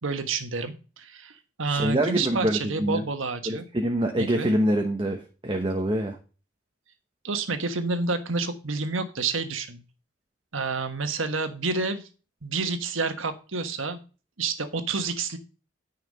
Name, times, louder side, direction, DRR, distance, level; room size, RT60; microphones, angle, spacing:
voice 1, 0.0-3.6 4.2-4.5 7.2-9.8 10.5-12.1 12.4-14.0 14.4-15.4, right 4 dB, 85° right, 8 dB, 1.4 m, -29 dB
voice 2, 1.7-3.0 3.5-6.2, right 1 dB, 25° right, 3 dB, 1.0 m, -25 dB
9.8 x 5.7 x 5.5 m, 0.34 s
head